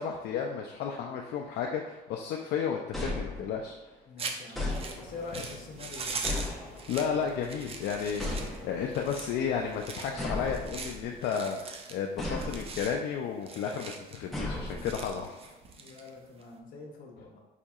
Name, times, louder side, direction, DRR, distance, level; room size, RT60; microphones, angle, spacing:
voice 1, 0.0-3.7 6.9-15.5, left 7 dB, 70° left, 1 dB, 0.4 m, -33 dB
sound 1, 2.9-3.8 4.5-5.4 6.2-7.1 8.2-9.0 10.2-11.2 12.2-12.9 14.3-15.2, left 1 dB, ahead, 0.9 m, -36 dB
voice 2, 4.1-6.3 15.8-17.4, left 3 dB, 55° left, 0 dB, 0.9 m, -45 dB
sound 2, 4.2-16.5, right 4 dB, 35° right, 0.5 m, -42 dB
Engine, 4.8-10.7, left 1 dB, 55° right, 1.0 m, -52 dB
4.9 x 2.7 x 2.4 m, 1.1 s
cardioid pair, 110°, 17 cm